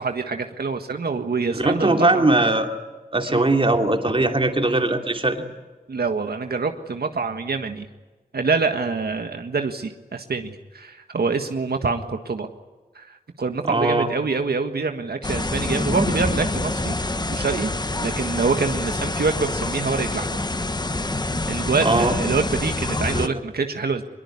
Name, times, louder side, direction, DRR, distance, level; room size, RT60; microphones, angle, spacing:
voice 1, 0.0-2.2 3.3-3.5 5.9-7.9 8.3-12.5 12.9-17.7 18.0-20.4 21.5-24.0, right 4 dB, 85° right, 6 dB, 1.6 m, -26 dB
voice 2, 1.5-2.7 3.1-5.4 13.6-14.1 21.8-22.2 23.1-23.3, right 2 dB, 35° right, 4 dB, 2.8 m, -20 dB
sound 1, 15.2-23.3, left 2 dB, 25° left, 1.2 m, -26 dB
23.5 x 22.0 x 9.8 m, 1.2 s
wide cardioid pair, 90°, 16 cm